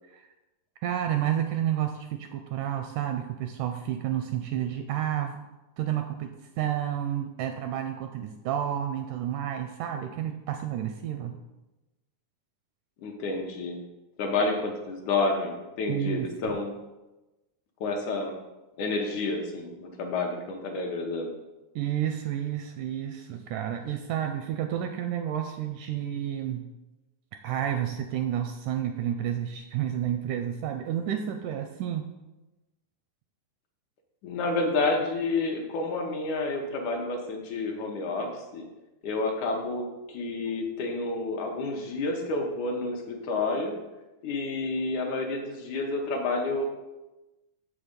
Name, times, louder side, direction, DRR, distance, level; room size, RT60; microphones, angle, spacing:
voice 1, 0.8-5.4 5.8-11.3 15.9-16.3 21.8-26.7 27.4-32.0, right 10 dB, 80° right, 6 dB, 1.8 m, -30 dB
voice 2, 13.0-13.8 14.2-16.7 17.8-18.4 18.8-21.3 34.2-38.7 39.0-43.8 44.2-46.6, left 3 dB, 70° left, 2 dB, 2.1 m, -29 dB
7.3 x 6.3 x 5.1 m, 1.0 s
omnidirectional pair, 4.0 m